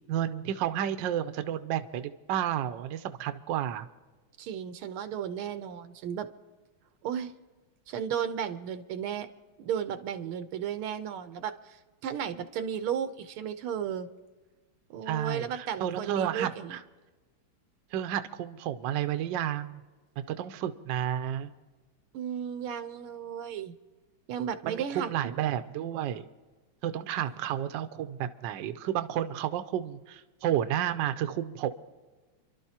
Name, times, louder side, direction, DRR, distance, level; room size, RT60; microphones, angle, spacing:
voice 1, 0.1-3.9 15.1-16.8 17.9-19.8 20.3-21.5 24.6-26.2 26.8-31.7, right 10 dB, 70° right, 9 dB, 1.2 m, -31 dB
voice 2, 4.4-6.3 7.0-7.3 7.9-9.3 9.6-14.1 14.9-16.8 22.1-23.7 24.3-25.1, right 8 dB, 90° right, 10 dB, 1.7 m, -34 dB
28.5 x 12.0 x 2.9 m, 1.3 s
omnidirectional pair, 2.3 m